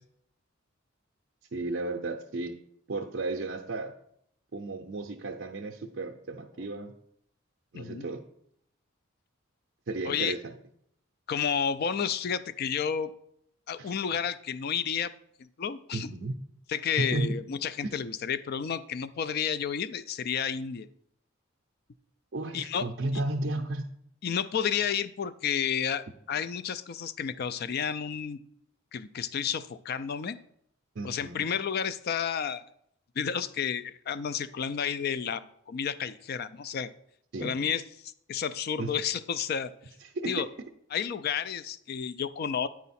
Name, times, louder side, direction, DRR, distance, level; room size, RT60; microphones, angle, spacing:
voice 1, 1.5-2.6 2.9-3.9 4.5-6.9 7.7-8.2 9.9-10.5 13.8-13.9 15.9-16.4 17.0-17.4 17.8-17.9 22.3-23.9 31.0-31.5 37.3-37.5 38.8-38.9 40.0-40.4, right 2 dB, 55° right, 2 dB, 0.5 m, -33 dB
voice 2, 7.7-8.1 10.0-10.3 11.3-13.1 13.7-15.1 15.4-16.1 16.7-20.9 22.5-22.8 24.2-28.4 28.9-30.4 31.0-32.6 33.2-36.9 37.4-39.7 40.2-40.5 40.9-42.7, left 7 dB, 50° left, 14 dB, 0.3 m, -31 dB
9.1 x 4.8 x 4.1 m, 0.71 s
head